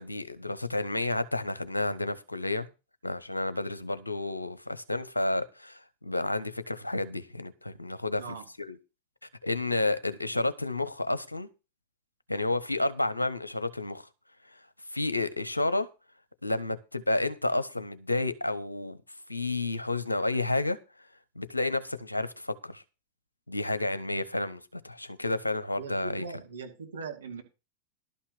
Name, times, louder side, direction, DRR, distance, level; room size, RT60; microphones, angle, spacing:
voice 1, 0.0-2.7 3.0-8.2 8.7-8.8 9.4-11.5 12.3-14.1 14.9-15.9 16.4-19.0 19.3-20.8 21.4-22.8 23.5-26.2, left 2 dB, 85° left, 1.2 m, -30 dB
voice 2, 25.7-27.4, right 4 dB, 70° right, 2.5 m, -40 dB
12.0 x 5.7 x 6.6 m
figure-of-eight pair, 90°, 0 cm